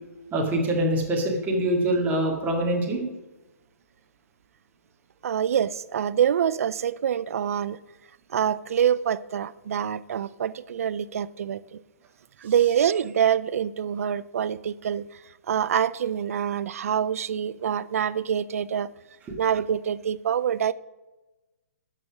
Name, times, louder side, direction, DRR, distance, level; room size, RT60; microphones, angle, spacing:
voice 1, 0.3-3.0 19.3-19.4, right 1 dB, 20° right, 2.0 m, -24 dB
voice 2, 5.2-7.8 8.3-11.8 12.4-15.0 15.5-18.9 19.4-20.7, right 9 dB, 60° right, 0.4 m, -25 dB
12.0 x 4.2 x 6.0 m
figure-of-eight pair, 130°, 9 cm